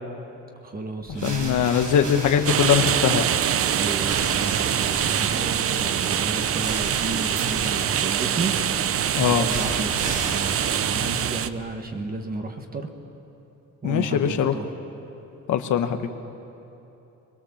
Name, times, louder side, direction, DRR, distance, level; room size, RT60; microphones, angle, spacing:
voice 1, 0.6-1.6 3.8-8.5 9.3-12.9 13.8-14.7, right 2 dB, 30° right, 4 dB, 1.4 m, -32 dB
sound 1, 1.0-11.7, right 2 dB, 70° right, 4.7 m, -36 dB
voice 2, 1.2-3.3 9.2-9.5 13.8-14.5 15.5-16.1, left 8 dB, 70° left, 6 dB, 1.1 m, -21 dB
sound 2, 2.5-11.5, right 9 dB, 45° right, 0.6 m, -24 dB
22.5 x 22.0 x 7.1 m, 3.0 s
cardioid pair, 150°, 31 cm